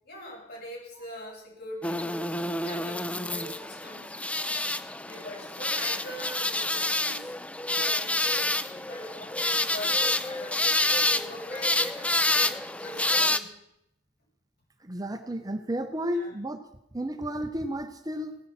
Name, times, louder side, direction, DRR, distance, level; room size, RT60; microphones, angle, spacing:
voice 1, 0.0-7.4 7.7-10.6 11.1-13.6 16.1-16.4, left 1 dB, 60° left, -3 dB, 7.0 m, -43 dB
sound 1, 1.8-13.4, left 2 dB, 5° left, 0.5 m, -28 dB
voice 2, 14.9-16.6 16.9-18.4, equal, 20° right, 9 dB, 0.9 m, -32 dB
17.0 x 10.5 x 5.8 m, 0.84 s
head